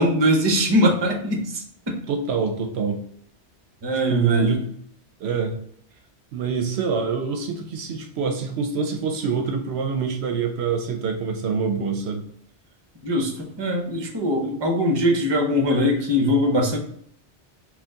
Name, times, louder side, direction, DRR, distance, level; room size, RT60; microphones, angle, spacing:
voice 1, 0.0-2.0 3.8-4.6 13.0-13.3 13.6-16.8, equal, 30° right, 2 dB, 0.6 m, -21 dB
voice 2, 2.1-3.0 4.1-4.6 5.2-5.6 6.3-12.2, right 5 dB, 70° right, 5 dB, 0.8 m, -25 dB
4.3 x 2.3 x 3.6 m, 0.66 s
omnidirectional pair, 1.2 m